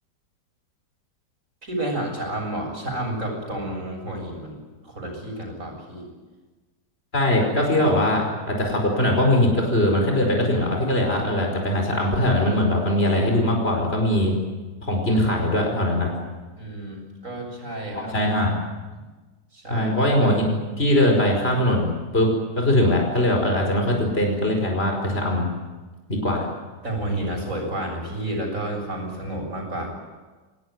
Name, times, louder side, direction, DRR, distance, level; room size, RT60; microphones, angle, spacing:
voice 1, 1.6-6.1 16.6-18.2 19.5-19.9 26.8-29.9, right 1 dB, 45° right, 1 dB, 7.8 m, -30 dB
voice 2, 7.1-14.4 14.8-16.1 17.9-18.5 19.7-20.5 20.8-22.3 22.6-25.5 26.1-26.4, left 1 dB, 35° left, 2 dB, 5.3 m, -21 dB
26.5 x 18.5 x 9.6 m, 1.3 s
omnidirectional pair, 1.9 m